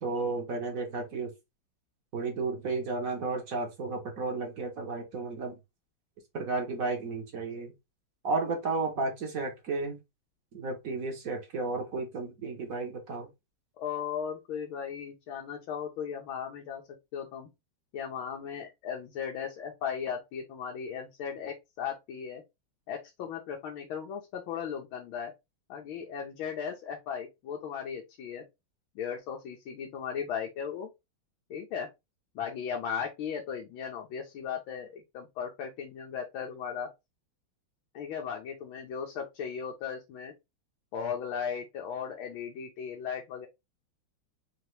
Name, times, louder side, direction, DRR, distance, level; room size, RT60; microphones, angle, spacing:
voice 1, 0.0-1.3 2.1-5.6 6.3-7.7 8.2-10.0 10.5-13.3, right 3 dB, 50° right, 1.2 m, -33 dB
voice 2, 13.8-16.8 17.1-17.5 17.9-22.4 22.9-25.3 25.7-28.4 28.9-30.9 31.5-31.9 32.3-36.9 37.9-40.3 40.9-43.5, left 7 dB, 80° left, 1.6 m, -37 dB
4.3 x 2.9 x 3.2 m
omnidirectional pair, 2.2 m